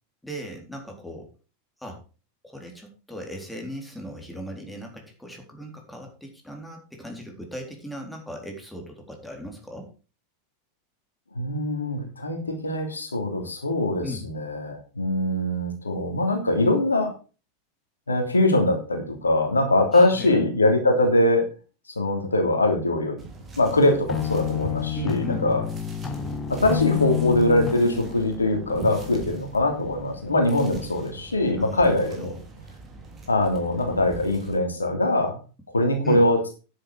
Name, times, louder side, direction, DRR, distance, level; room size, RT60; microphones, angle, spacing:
voice 1, 0.2-1.3 1.8-2.0 2.4-9.9 14.0-14.3 19.9-20.4 24.9-25.4 31.6-32.4 36.0-36.2, equal, 5° left, 2 dB, 3.8 m, -37 dB
voice 2, 11.3-17.1 18.1-21.4 21.9-23.2 23.6-25.6 26.5-32.3 33.3-35.4 35.7-36.4, left 1 dB, 75° left, 3 dB, 3.1 m, -22 dB
sound 1, 23.2-34.6, right 3 dB, 25° right, 3.4 m, -41 dB
sound 2, 24.1-29.2, left 10 dB, 20° left, 1.6 m, -29 dB
10.0 x 8.4 x 5.0 m, 0.33 s
figure-of-eight pair, 90°, 0 cm